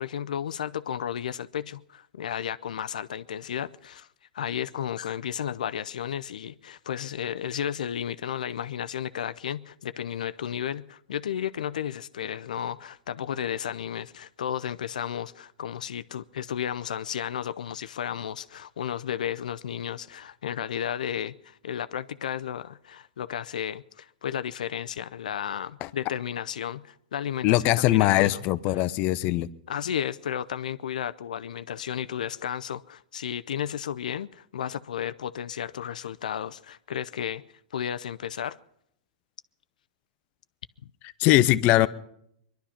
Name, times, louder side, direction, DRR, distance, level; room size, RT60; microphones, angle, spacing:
voice 1, 0.0-4.1 4.3-28.4 28.7-28.9 29.7-37.4 37.7-38.6, left 9 dB, 80° left, 0.5 m, -33 dB
voice 2, 27.4-29.5 41.2-41.9, left 16 dB, 40° left, 0.6 m, -21 dB
21.5 x 11.5 x 5.8 m
hypercardioid pair, 120°, 4 cm